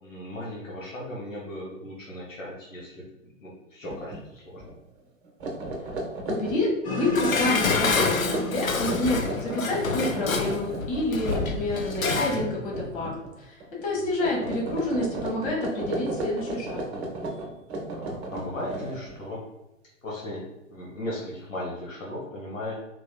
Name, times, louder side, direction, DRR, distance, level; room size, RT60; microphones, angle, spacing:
voice 1, 0.0-4.7 13.9-14.0 18.0-19.4 20.0-22.8, left 1 dB, 70° left, -3 dB, 1.0 m, -37 dB
sound 1, 3.8-4.2 4.5-4.7 5.2-13.3 13.6-13.9 14.2-19.3, right 2 dB, 55° right, 0.9 m, -34 dB
voice 2, 6.2-16.8, left 2 dB, 40° left, -3 dB, 1.3 m, -28 dB
sound 2, 6.8-12.1, left 2 dB, 20° left, 0.4 m, -36 dB
Dishes pots and pans, 7.1-12.4 12.8-12.9, left 4 dB, 90° left, 0.5 m, -28 dB
4.0 x 2.9 x 2.2 m, 0.93 s
figure-of-eight pair, 105°, 40 cm